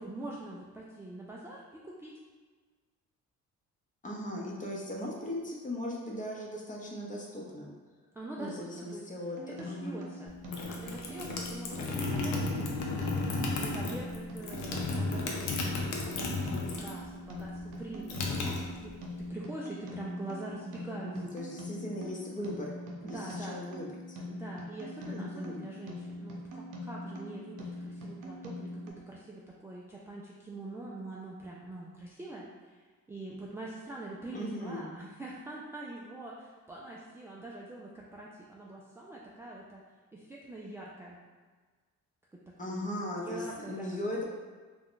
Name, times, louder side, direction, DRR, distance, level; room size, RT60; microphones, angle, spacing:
voice 1, 0.0-2.1 8.1-9.1 9.5-10.3 10.7-18.9 19.2-21.2 23.0-23.6 24.2-32.8 33.1-39.8 40.1-41.2 42.3-43.0 43.2-44.2, right 2 dB, 10° right, -5 dB, 0.3 m, -44 dB
voice 2, 4.0-7.7 8.4-9.4 9.7-10.0 21.0-22.7 23.0-24.2 25.1-25.6 34.3-34.9 42.6-44.2, left 1 dB, 25° left, -2 dB, 0.7 m, -38 dB
sound 1, 9.4-28.9, left 1 dB, 85° right, 0.6 m, -43 dB
sound 2, 10.3-17.0 17.3-19.2, left 3 dB, 80° left, 0.6 m, -34 dB
2.5 x 2.2 x 3.6 m, 1.4 s
cardioid pair, 90°, 30 cm